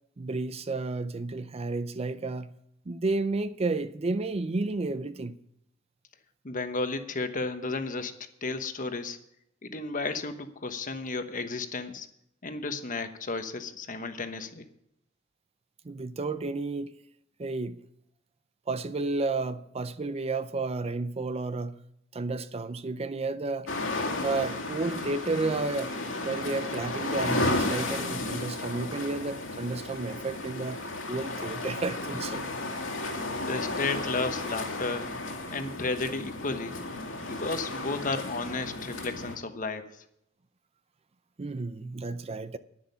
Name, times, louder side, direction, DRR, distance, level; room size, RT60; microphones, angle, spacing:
voice 1, 0.2-2.6 2.9-5.4 15.8-16.9 17.4-17.8 18.7-21.8 22.1-23.7 24.2-26.0 26.2-30.8 31.1-32.4 41.4-42.6, right 3 dB, 30° right, 0.5 m, -32 dB
voice 2, 6.4-8.1 8.4-9.2 9.6-12.1 12.4-14.7 32.3-32.4 33.1-35.1 35.5-36.8 37.2-40.0, left 3 dB, 40° left, 1.1 m, -33 dB
sound 1, 23.7-39.4, left 2 dB, 80° left, 2.6 m, -33 dB
10.5 x 10.5 x 5.6 m
head